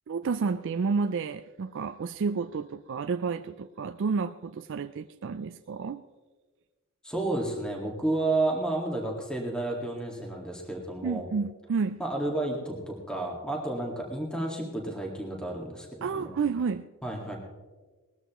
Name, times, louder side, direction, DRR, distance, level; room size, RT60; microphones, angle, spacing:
voice 1, 0.1-6.0 11.0-12.0 16.0-16.9, right 5 dB, 60° right, 9 dB, 0.4 m, -30 dB
voice 2, 7.0-11.3 12.0-16.3 17.0-17.4, right 2 dB, 5° left, -1 dB, 1.9 m, -31 dB
20.0 x 14.0 x 3.0 m, 1.3 s
head